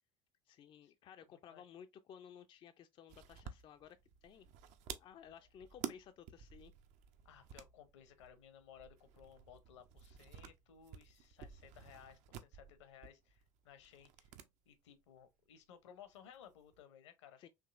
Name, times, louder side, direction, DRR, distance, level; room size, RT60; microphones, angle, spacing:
voice 1, 0.5-4.5 5.0-6.7 17.4-17.5, left 8 dB, 35° left, 0.4 m, -56 dB
voice 2, 1.3-1.7 7.2-14.3 14.7-17.4, left 9 dB, 65° left, 0.8 m, -59 dB
sound 1, 3.1-14.5 14.7-14.8 16.1-16.8, right 9 dB, 45° right, 0.5 m, -52 dB
4.8 x 2.9 x 2.4 m
figure-of-eight pair, 65°, 16 cm